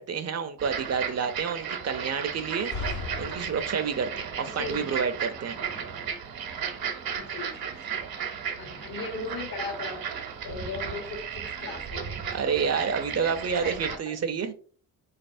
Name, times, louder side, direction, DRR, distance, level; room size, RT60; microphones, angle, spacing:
voice 1, 0.0-2.7 3.2-5.6 12.3-14.5, right 6 dB, 45° right, 9 dB, 0.5 m, -29 dB
sound 1, 0.6-14.0, right 7 dB, 70° right, 0.9 m, -35 dB
sound 2, 2.5-4.1, left 4 dB, 40° left, 0.6 m, -37 dB
voice 2, 4.5-5.1 7.1-7.7 8.6-10.0 10.4-12.2 13.1-13.3 13.6-14.0, left 3 dB, 70° left, 2 dB, 1.6 m, -37 dB
4.0 x 3.2 x 2.5 m, 0.43 s
cardioid pair, 75°, 37 cm